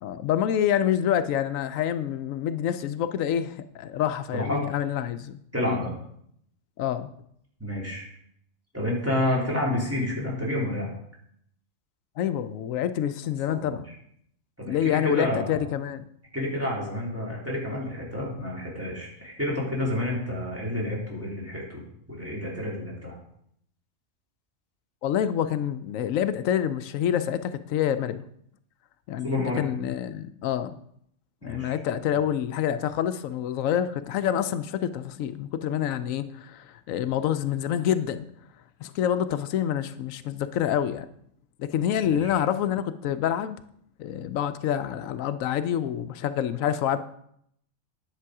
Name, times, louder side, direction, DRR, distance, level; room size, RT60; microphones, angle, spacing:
voice 1, 0.0-5.8 6.8-7.1 12.2-13.9 14.7-16.1 25.0-28.2 29.1-30.7 31.4-38.3 38.8-41.1 41.6-43.6 44.0-47.0, left 10 dB, 90° left, 1.0 m, -27 dB
voice 2, 4.3-4.7 5.5-5.9 7.6-8.0 8.7-10.9 13.5-13.8 14.6-15.6 16.3-23.2 29.2-29.6 31.4-31.7 32.1-32.2 42.1-42.3, left 1 dB, 10° right, 3.0 m, -29 dB
10.0 x 6.8 x 4.8 m
omnidirectional pair, 1.3 m